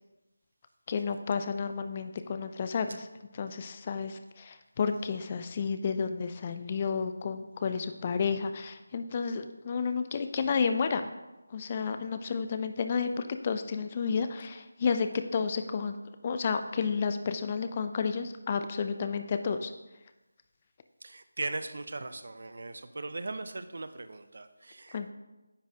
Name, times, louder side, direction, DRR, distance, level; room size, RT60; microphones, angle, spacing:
voice 1, 0.9-3.1 3.3-11.1 11.5-16.0 16.2-19.7 24.9-25.1, left 5 dB, 30° left, 8 dB, 0.3 m, -31 dB
voice 2, 21.0-25.1, right 2 dB, 60° right, 11 dB, 0.4 m, -39 dB
9.5 x 4.0 x 2.7 m, 1.1 s
figure-of-eight pair, 160°, 0 cm